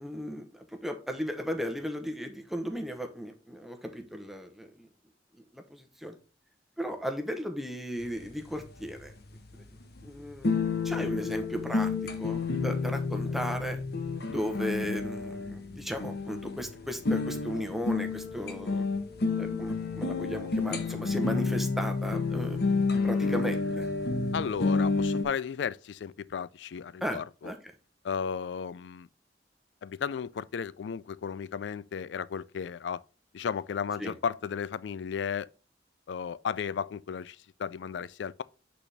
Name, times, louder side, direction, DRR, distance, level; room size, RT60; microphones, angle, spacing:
voice 1, 0.0-4.9 5.3-6.2 6.8-9.1 9.5-9.6 10.0-13.8 14.3-18.9 19.4-22.6 23.0-23.9 27.0-27.6 34.0-34.1, equal, ahead, 0.9 m, -36 dB
sound 1, 8.0-25.2, left 4 dB, 60° left, 1.0 m, -30 dB
voice 2, 24.3-27.5 28.0-29.1 29.8-33.0 33.3-35.5 36.1-38.4, left 7 dB, 75° left, 0.4 m, -34 dB
8.2 x 4.2 x 3.4 m
head